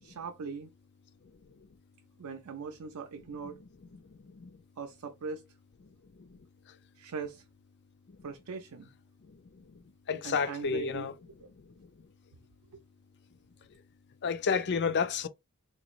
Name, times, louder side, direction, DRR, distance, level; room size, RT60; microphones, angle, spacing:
voice 1, 0.0-0.7 2.2-3.6 4.8-5.4 7.0-7.4 8.2-8.9 10.2-11.1 12.7-12.8, right 5 dB, 85° right, 0.5 m, -40 dB
voice 2, 10.1-11.1 14.2-15.3, left 5 dB, 50° left, 0.5 m, -30 dB
3.8 x 3.0 x 2.5 m
head